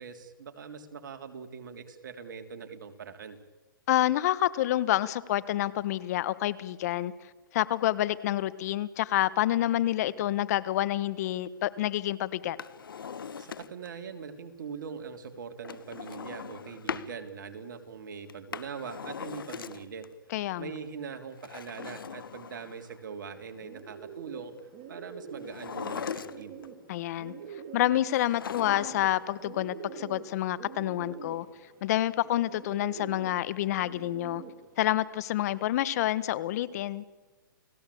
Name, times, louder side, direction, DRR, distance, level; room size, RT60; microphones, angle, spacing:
voice 1, 0.0-3.4 13.4-20.1 20.6-24.5 24.9-26.6, right 6 dB, 65° right, 7 dB, 3.4 m, -42 dB
voice 2, 3.9-7.1 7.5-12.6 20.3-20.7 26.9-27.3 27.7-31.4 31.8-34.4 34.8-37.0, left 14 dB, 50° left, 17 dB, 1.4 m, -28 dB
Drawer open or close, 12.4-14.0 15.6-17.1 18.3-20.1 21.3-23.0 25.4-26.7 28.1-29.2 29.5-29.6, left 7 dB, 80° left, 1.5 m, -39 dB
Bird, 23.3-35.0, right 6 dB, 30° right, 4.1 m, -46 dB
30.0 x 18.5 x 8.6 m, 1.3 s
hypercardioid pair, 135°, 11 cm